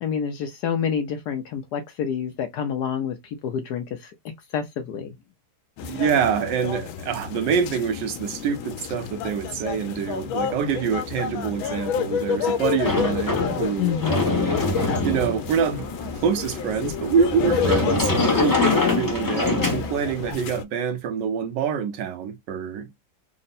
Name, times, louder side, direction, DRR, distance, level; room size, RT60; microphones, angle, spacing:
voice 1, 0.0-3.2 3.4-4.1 4.5-5.1 13.8-14.5 18.6-19.0, left 8 dB, 70° left, 1.0 m, -27 dB
sound 1, 5.8-20.6, left 8 dB, 85° left, 1.4 m, -30 dB
voice 2, 5.8-14.0 15.0-15.9 16.2-22.9, right 7 dB, 75° right, 1.1 m, -25 dB
Sliding door, 12.8-20.3, left 2 dB, 25° left, 0.4 m, -25 dB
3.5 x 2.1 x 4.0 m
omnidirectional pair, 2.1 m